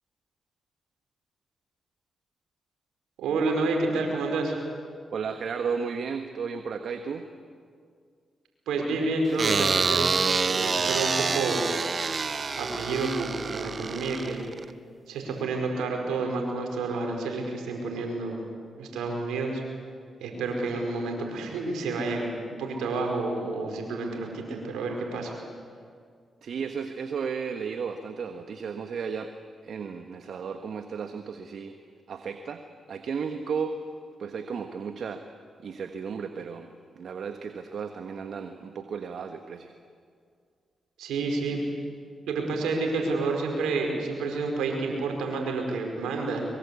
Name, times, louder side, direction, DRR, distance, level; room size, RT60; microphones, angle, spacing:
voice 1, 3.2-4.5 8.7-11.6 12.6-14.4 15.1-18.4 18.8-19.6 20.2-22.3 22.6-25.3 41.0-41.6 42.3-46.4, right 3 dB, 85° right, 2 dB, 4.8 m, -29 dB
voice 2, 5.1-7.3 26.4-29.3 29.6-31.7 32.1-32.6 32.9-33.8 34.2-35.2 35.6-39.7, right 6 dB, 70° right, 7 dB, 1.3 m, -34 dB
sound 1, 9.4-14.7, right 4 dB, 50° right, 1.0 m, -27 dB
23.5 x 23.0 x 8.4 m, 2.1 s
supercardioid pair, 45°, 0 cm